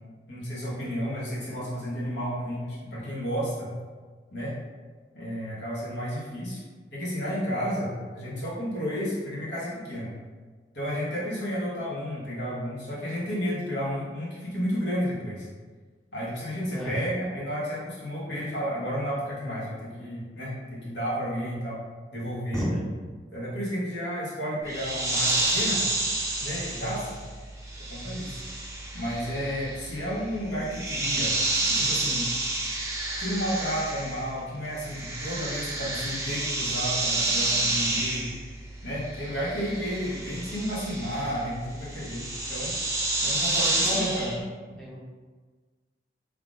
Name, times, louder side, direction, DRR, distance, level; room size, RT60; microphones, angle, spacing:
voice 1, 0.3-3.7 4.3-4.5 5.1-6.6 6.9-10.1 10.7-15.5 16.1-21.8 22.1-22.7 23.3-25.8 26.4-27.2 27.9-28.4 28.9-31.3 31.7-32.3 33.2-38.3 38.8-42.2 42.5-42.8 43.2-44.3, equal, 85° left, -7 dB, 1.3 m, -32 dB
voice 2, 16.7-17.1 22.5-22.9 43.8-44.3 44.8-45.0, equal, 5° left, -8 dB, 0.8 m, -29 dB
sound 1, 24.7-34.4 34.6-44.4, right 2 dB, 15° right, 0.4 m, -30 dB
3.2 x 2.4 x 3.9 m, 1.4 s
head